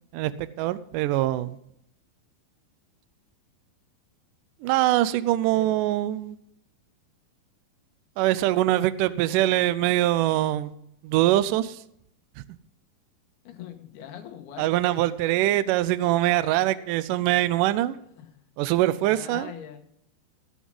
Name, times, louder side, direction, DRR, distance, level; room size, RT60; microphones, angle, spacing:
voice 1, 0.1-1.6 4.6-6.4 8.2-10.7 11.0-11.8 14.6-18.0 18.6-19.5, right 15 dB, 85° right, 15 dB, 1.9 m, -23 dB
voice 2, 13.4-14.7 17.2-17.3 17.7-17.8 18.2-18.4 19.0-19.8, left 9 dB, 90° left, 6 dB, 3.3 m, -42 dB
17.0 x 6.3 x 5.4 m, 0.72 s
omnidirectional pair, 4.4 m